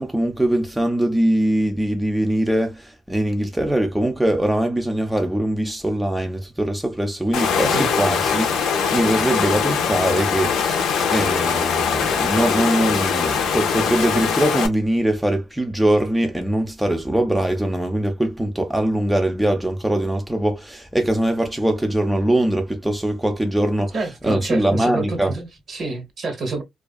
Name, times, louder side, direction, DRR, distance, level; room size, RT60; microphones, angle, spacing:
voice 1, 0.0-23.9 24.2-25.3, right 1 dB, 5° right, 0.4 m, -22 dB
Water, 7.3-14.7, left 6 dB, 85° left, 0.5 m, -21 dB
voice 2, 23.9-26.6, right 3 dB, 50° right, 0.9 m, -28 dB
2.4 x 2.3 x 2.3 m
cardioid pair, 90°, 0 cm